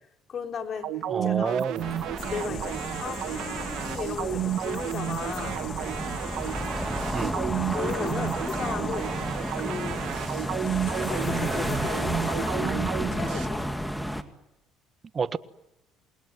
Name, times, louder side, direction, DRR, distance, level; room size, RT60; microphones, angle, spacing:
voice 1, 0.3-0.9 1.2-1.6 2.3-5.6 5.9-6.1 7.3-9.1 9.6-10.3 11.1-13.6, left 6 dB, 45° left, 4.6 m, -36 dB
sound 1, 0.8-13.5, right 12 dB, 70° right, 1.3 m, -32 dB
voice 2, 1.1-1.9 7.1-7.4 15.1-15.4, right 5 dB, 35° right, 1.4 m, -29 dB
sound 2, 1.8-14.2, equal, ahead, 2.2 m, -32 dB
sound 3, 2.2-12.4, left 11 dB, 65° left, 2.6 m, -45 dB
28.0 x 21.0 x 9.4 m
supercardioid pair, 95°, 0 cm